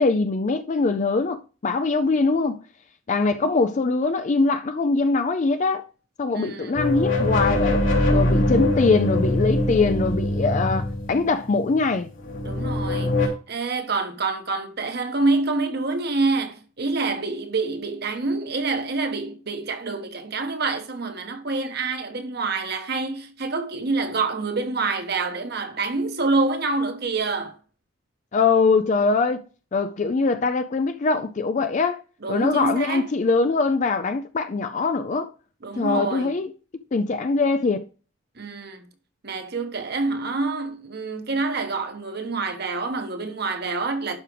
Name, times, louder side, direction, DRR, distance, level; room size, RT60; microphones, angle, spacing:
voice 1, 0.0-2.6 3.1-5.8 6.2-7.8 8.1-12.1 28.3-29.4 29.7-32.0 32.3-35.3 35.8-36.5 36.9-37.9, left 4 dB, 40° left, 0.4 m, -22 dB
voice 2, 6.3-6.8 12.4-27.6 32.2-33.1 35.6-36.3 38.4-38.8 39.2-44.2, right 3 dB, 55° right, 1.1 m, -27 dB
sound 1, 6.7-11.7 12.2-13.3, left 1 dB, 85° left, 2.9 m, -23 dB
11.5 x 4.8 x 3.3 m
head